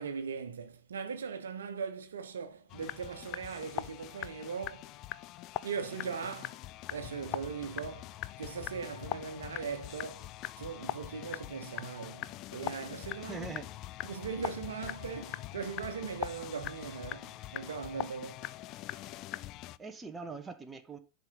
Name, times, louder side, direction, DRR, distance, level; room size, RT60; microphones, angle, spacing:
voice 1, 0.0-4.9 5.6-10.3 10.6-13.5 14.0-18.5, right 6 dB, 65° right, 1.1 m, -40 dB
sound 1, 2.7-19.8, left 15 dB, 40° left, 0.4 m, -42 dB
voice 2, 13.2-13.7 19.8-21.0, right 4 dB, 15° right, 1.1 m, -42 dB
10.5 x 5.1 x 3.9 m
figure-of-eight pair, 90°, 0 cm